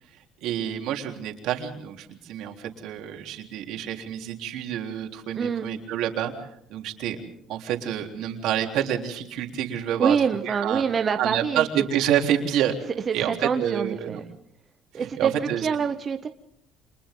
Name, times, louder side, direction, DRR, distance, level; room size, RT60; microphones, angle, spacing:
voice 1, 0.4-6.3 6.7-7.2 7.5-10.2 10.4-10.8 11.2-12.7 13.1-14.2 14.9-15.7, right 10 dB, 75° right, 2 dB, 3.6 m, -28 dB
voice 2, 5.3-5.7 10.0-11.7 13.1-14.2 14.9-16.3, right 6 dB, 35° right, 7 dB, 1.0 m, -26 dB
30.0 x 27.0 x 3.9 m, 0.77 s
cardioid pair, 125°, 0 cm